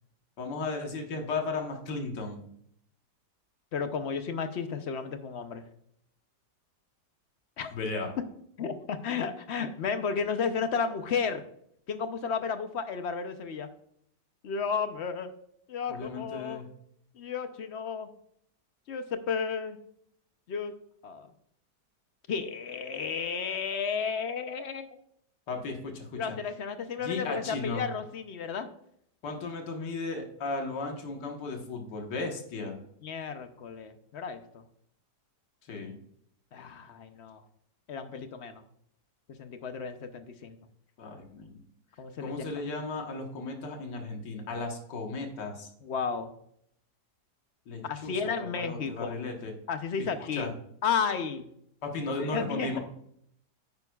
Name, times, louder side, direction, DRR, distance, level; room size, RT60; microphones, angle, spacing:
voice 1, 0.4-2.4 7.7-8.1 15.9-16.7 25.5-26.4 27.0-27.8 29.2-32.8 35.7-35.9 41.0-41.6 42.2-45.7 47.7-48.1 48.5-49.5 50.0-50.5 51.8-52.8, left 3 dB, 85° left, 3 dB, 2.0 m, -35 dB
voice 2, 3.7-5.6 7.6-7.7 8.6-11.4 11.9-13.7 14.4-15.3 15.7-16.6 17.1-18.1 18.9-19.8 20.5-20.7 21.0-21.3 22.3-24.9 26.2-28.7 33.0-34.6 36.5-37.4 37.9-38.6 39.3-40.6 42.0-42.5 45.8-46.3 47.8-49.1 49.7-50.5 50.8-51.5 52.1-52.8, left 6 dB, 55° left, 9 dB, 0.7 m, -33 dB
10.5 x 9.3 x 2.3 m, 0.69 s
omnidirectional pair, 1.8 m